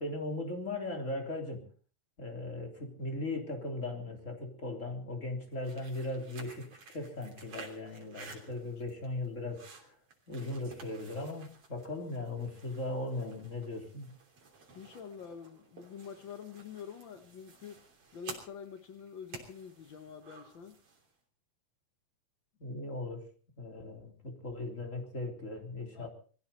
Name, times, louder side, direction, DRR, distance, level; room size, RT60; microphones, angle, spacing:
voice 1, 0.0-1.7 2.2-10.0 10.3-14.2 22.6-23.2 23.6-26.1, left 2 dB, 20° left, 3.6 m, -38 dB
sound 1, 5.5-21.1, right 4 dB, 45° right, 4.1 m, -53 dB
voice 2, 14.7-17.8 18.1-20.8 25.9-26.1, left 7 dB, 60° left, 1.2 m, -46 dB
22.0 x 15.5 x 4.3 m
omnidirectional pair, 3.8 m